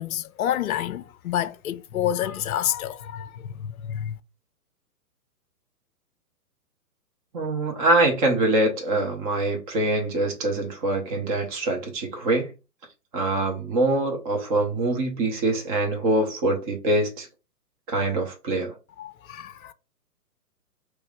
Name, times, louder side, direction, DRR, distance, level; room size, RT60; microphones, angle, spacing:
voice 1, 0.0-4.2 19.0-19.7, left 11 dB, 65° left, 0.5 m, -29 dB
voice 2, 7.3-12.5 13.1-17.3 17.9-18.7, right 2 dB, 25° right, 0.9 m, -24 dB
3.0 x 2.8 x 3.6 m
figure-of-eight pair, 125°, 47 cm